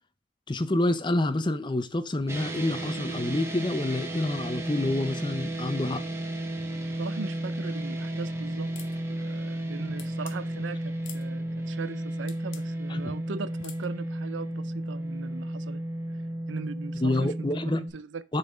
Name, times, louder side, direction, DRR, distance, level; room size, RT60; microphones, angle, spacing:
voice 1, 0.5-6.0 12.9-13.1 17.0-17.8 18.3-18.4, left 1 dB, 25° left, 0.5 m, -27 dB
sound 1, 2.3-17.9, right 1 dB, 15° right, 1.1 m, -33 dB
voice 2, 7.0-8.7 9.1-15.8 16.5-18.2, right 4 dB, 80° right, 0.5 m, -39 dB
sound 2, 8.8-9.0 10.0-10.4 11.0-11.3 12.3-12.7 13.6-13.9, left 10 dB, 90° left, 0.9 m, -45 dB
6.7 x 4.2 x 5.0 m
head